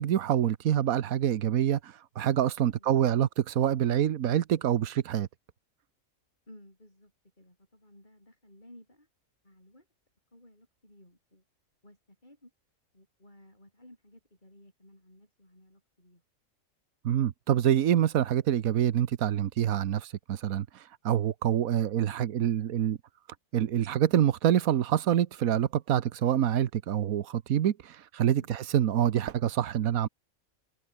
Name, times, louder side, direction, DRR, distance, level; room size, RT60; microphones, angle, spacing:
voice 1, 0.0-5.3 17.0-23.0 23.5-30.1, right 10 dB, 85° right, 1.4 m, -26 dB
voice 2, 2.6-3.1 6.5-7.1 7.4-9.1 9.4-9.9 10.3-11.4 11.8-12.5 12.9-16.2 28.3-28.5, left 1 dB, 35° left, 8.0 m, -56 dB
omnidirectional pair, 1.5 m